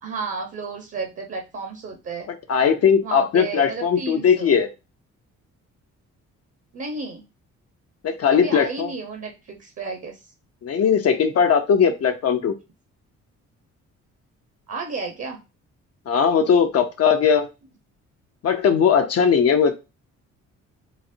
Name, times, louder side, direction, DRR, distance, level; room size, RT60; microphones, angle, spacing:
voice 1, 0.0-2.3 3.0-4.5 6.7-7.3 8.3-10.3 14.7-15.4, right 4 dB, 50° right, 3 dB, 0.9 m, -32 dB
voice 2, 2.5-4.7 8.0-8.9 10.6-12.5 16.1-17.5 18.4-19.7, left 7 dB, 55° left, 5 dB, 0.6 m, -19 dB
4.0 x 2.0 x 2.6 m, 0.27 s
cardioid pair, 90°, 30 cm